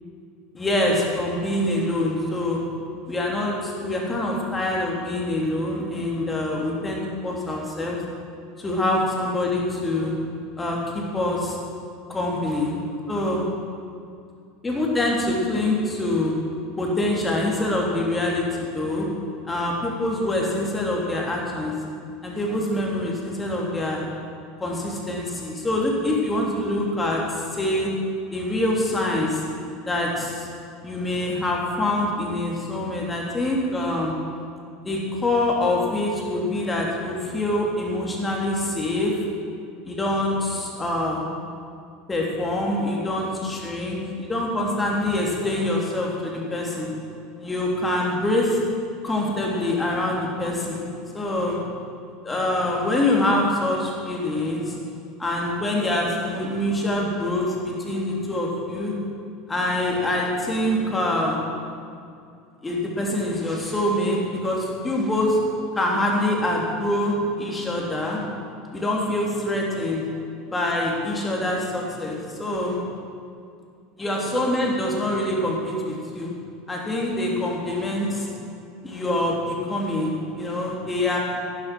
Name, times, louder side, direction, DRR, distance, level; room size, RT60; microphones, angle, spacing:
voice 1, 0.5-2.6 3.1-8.0 8.6-10.1 10.6-11.6 12.1-12.7 13.1-13.5 14.6-16.3 16.8-19.1 19.5-21.7 22.2-24.0 24.6-27.9 28.3-29.4 29.9-30.5 30.8-34.1 34.8-39.1 39.9-41.2 42.1-46.9 47.4-48.6 49.0-50.8 51.1-51.6 52.2-54.8 55.2-58.9 59.5-61.4 62.6-65.4 65.7-68.2 68.7-70.0 70.5-72.8 74.0-76.3 76.7-78.3 78.8-81.2, left 1 dB, 15° left, -2 dB, 3.3 m, -25 dB
12.0 x 9.8 x 6.2 m, 2.4 s
figure-of-eight pair, 75°, 0 cm